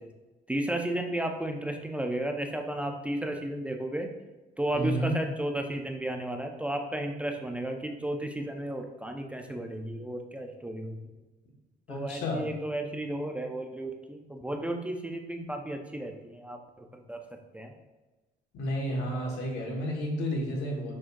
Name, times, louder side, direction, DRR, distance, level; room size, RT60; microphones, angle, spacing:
voice 1, 0.5-4.1 4.6-11.0 11.9-17.2 17.5-17.7, right 1 dB, 5° right, 3 dB, 0.6 m, -33 dB
voice 2, 4.7-5.2 11.9-12.5 15.4-15.5 18.5-20.9, equal, 85° left, -1 dB, 1.7 m, -31 dB
6.3 x 6.1 x 2.6 m, 1.1 s
cardioid pair, 110°, 17 cm